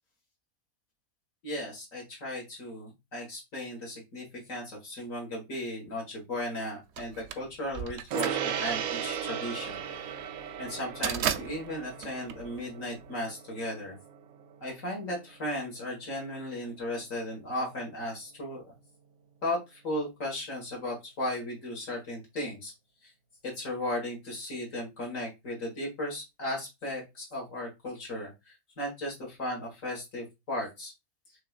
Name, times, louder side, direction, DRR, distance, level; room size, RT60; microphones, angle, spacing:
voice 1, 1.4-4.2 4.5-9.8 10.6-13.9 14.6-18.7 19.4-19.6 19.8-22.7 23.4-28.3 28.8-30.9, left 1 dB, 65° left, -2 dB, 2.0 m, -36 dB
sound 1, 7.0-13.1, right 9 dB, 65° right, 0.7 m, -35 dB
Gong, 8.1-17.8, right 8 dB, 85° right, 1.1 m, -38 dB
5.6 x 3.4 x 2.4 m, 0.22 s
omnidirectional pair, 1.5 m